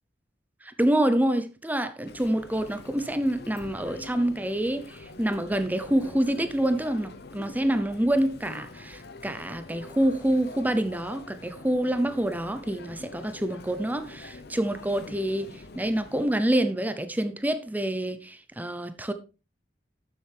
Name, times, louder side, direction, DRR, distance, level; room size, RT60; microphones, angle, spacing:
voice 1, 0.6-19.1, right 1 dB, 10° right, 0.8 m, -27 dB
Chatter, 2.0-16.4, left 3 dB, 60° left, 1.1 m, -45 dB
12.5 x 7.8 x 3.5 m
head